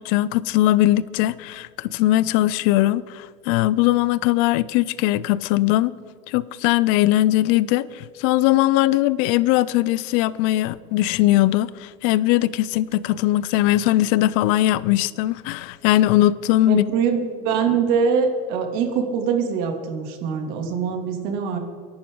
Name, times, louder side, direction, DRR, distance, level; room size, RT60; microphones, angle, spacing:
voice 1, 0.0-5.9 6.3-16.8, left 15 dB, 70° left, 0.7 m, -20 dB
voice 2, 16.7-21.6, right 6 dB, 65° right, 2.9 m, -23 dB
29.5 x 11.5 x 4.0 m
cardioid pair, 150°, 17 cm